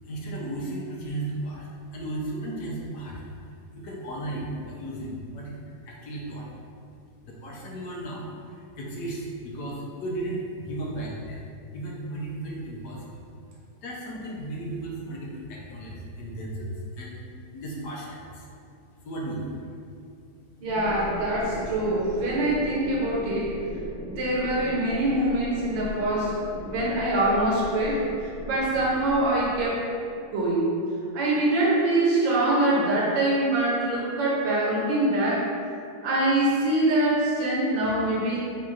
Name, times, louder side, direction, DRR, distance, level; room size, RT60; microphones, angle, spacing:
voice 1, 0.0-3.2 3.8-5.6 5.8-6.5 7.2-11.4 11.7-13.2 13.8-17.2 17.5-18.5 19.0-19.6, right 1 dB, 65° left, -3 dB, 1.2 m, -35 dB
sound 1, 20.6-29.7, equal, 25° left, 0.6 m, -38 dB
voice 2, 20.6-23.6 24.0-29.9 30.3-30.7 31.1-35.5 36.0-38.4, right 1 dB, 70° right, -4 dB, 1.5 m, -24 dB
4.4 x 2.5 x 3.8 m, 2.4 s
omnidirectional pair, 2.1 m